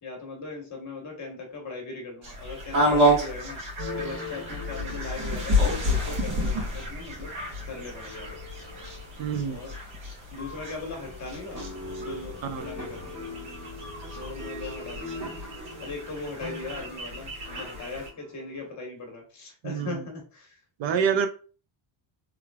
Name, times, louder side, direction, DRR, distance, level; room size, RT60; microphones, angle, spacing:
voice 1, 0.0-3.6 4.0-7.3 7.6-8.4 9.4-9.7 10.3-11.6 12.0-13.0 14.1-15.3 15.8-20.6, left 3 dB, 35° left, 1 dB, 1.2 m, -39 dB
sound 1, 2.2-18.1, equal, 90° right, 1.8 m, -30 dB
sound 2, 3.8-7.0 7.4-7.8 8.2-9.1 9.4-9.5 10.9-18.7, left 2 dB, 35° right, 1.8 m, -42 dB
voice 2, 9.2-9.6 12.5-12.6 19.6-19.9 20.8-21.3, right 7 dB, 65° right, 7 dB, 0.6 m, -26 dB
3.4 x 3.3 x 2.3 m, 0.37 s
cardioid pair, 170°, 48 cm